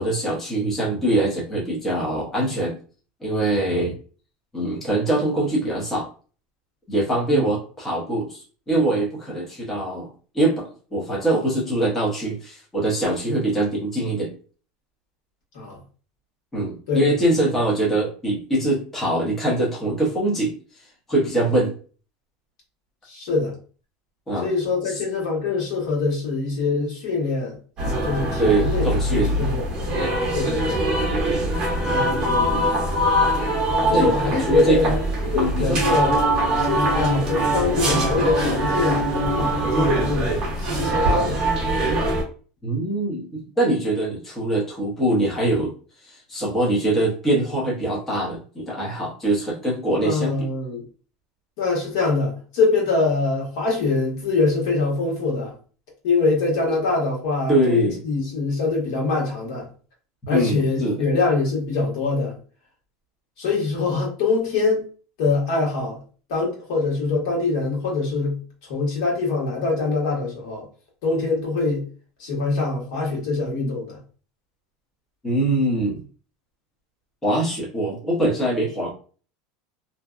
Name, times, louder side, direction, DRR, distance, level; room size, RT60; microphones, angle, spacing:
voice 1, 0.0-2.8 3.2-3.9 4.5-6.1 6.9-8.4 8.7-10.1 10.3-14.3 16.5-20.5 21.1-21.7 24.3-24.5 24.8-25.0 28.4-29.4 33.9-34.1 34.5-34.8 35.3-35.8 42.6-45.7 46.0-50.4 57.5-58.0 60.3-61.0 75.2-76.0 77.2-78.9, right 1 dB, 10° left, 0.7 m, -23 dB
voice 2, 23.1-23.5 24.4-27.6 27.8-29.7 30.3-30.8 31.9-32.7 33.7-36.2 36.6-41.4 50.0-50.8 51.6-55.5 56.0-59.7 60.3-62.3 63.4-64.9 65.2-66.0 66.3-68.4 68.7-70.6 71.0-71.9 72.2-74.0, left 3 dB, 65° left, 1.2 m, -24 dB
sound 1, 27.8-42.2, right 1 dB, 25° right, 0.8 m, -22 dB
2.6 x 2.1 x 2.3 m
cardioid pair, 170°, 3 cm